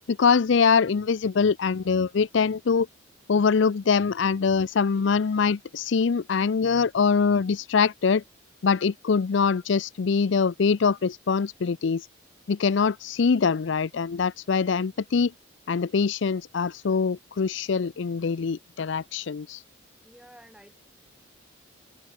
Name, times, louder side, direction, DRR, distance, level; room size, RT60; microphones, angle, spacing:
voice 1, 0.1-2.9 3.3-8.2 8.6-12.1 12.5-15.3 15.7-19.6, left 5 dB, 65° left, 0.4 m, -23 dB
voice 2, 20.0-20.8, equal, 5° right, 5.1 m, -52 dB
head